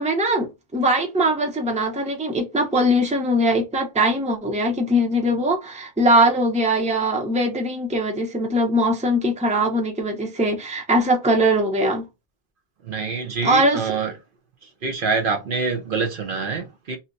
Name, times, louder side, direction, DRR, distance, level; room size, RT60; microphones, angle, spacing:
voice 1, 0.0-12.0 13.4-13.9, right 1 dB, 10° right, 0.6 m, -21 dB
voice 2, 12.8-14.1 14.8-17.0, right 4 dB, 60° right, 0.7 m, -25 dB
2.8 x 2.1 x 3.8 m
omnidirectional pair, 1.1 m